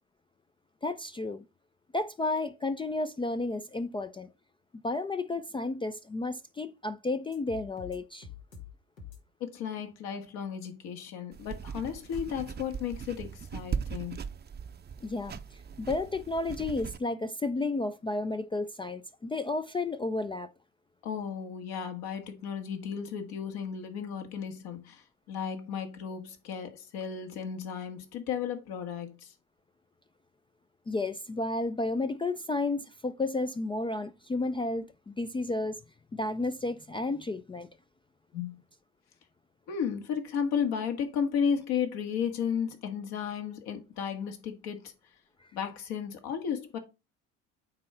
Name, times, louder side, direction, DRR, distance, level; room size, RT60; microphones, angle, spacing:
voice 1, 0.8-1.4 1.9-4.3 4.8-8.3 15.0-15.4 15.8-20.5 30.9-35.8 36.1-37.7 45.4-45.5, left 2 dB, 15° left, 0.4 m, -32 dB
sound 1, 7.3-8.0 8.2-8.7 9.0-9.2 12.1-12.3, left 7 dB, 85° left, 1.9 m, -45 dB
voice 2, 9.4-14.2 21.0-29.3 38.3-38.6 39.7-44.9 45.5-46.8, left 7 dB, 65° left, 1.7 m, -34 dB
sound 2, 11.3-17.0, right 7 dB, 25° right, 0.6 m, -39 dB
8.7 x 3.8 x 4.3 m
hypercardioid pair, 60°, 40 cm